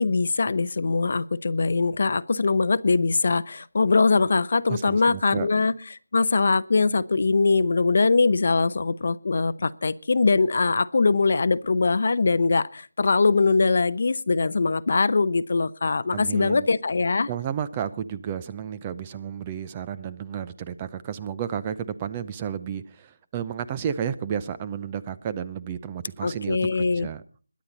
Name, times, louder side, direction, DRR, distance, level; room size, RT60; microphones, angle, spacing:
voice 1, 0.0-5.7 6.1-17.3 26.2-27.1, left 4 dB, 45° left, 16 dB, 0.7 m, -22 dB
voice 2, 4.7-5.5 16.1-16.7 17.3-27.2, right 8 dB, 15° right, 13 dB, 0.6 m, -32 dB
22.0 x 9.6 x 4.1 m, 0.38 s
figure-of-eight pair, 165°, 0 cm